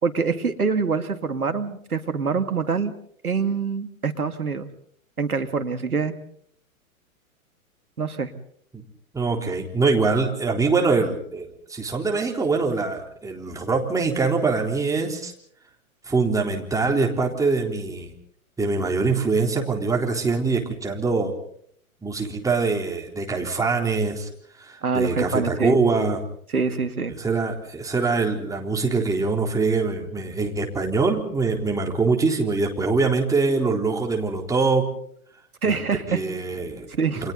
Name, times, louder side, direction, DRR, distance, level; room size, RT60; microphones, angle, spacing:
voice 1, 0.0-2.9 3.2-4.7 5.2-6.1 8.0-8.3 24.8-25.8 26.5-27.1 35.6-36.2 36.9-37.3, right 5 dB, 85° right, 9 dB, 2.3 m, -25 dB
voice 2, 9.1-15.3 16.1-18.1 18.6-21.3 22.0-24.3 24.6-26.2 27.2-34.9 35.6-35.7 36.1-36.9 37.2-37.3, right 4 dB, 10° right, 1 dB, 3.8 m, -23 dB
30.0 x 26.5 x 4.1 m, 0.63 s
figure-of-eight pair, 120°, 43 cm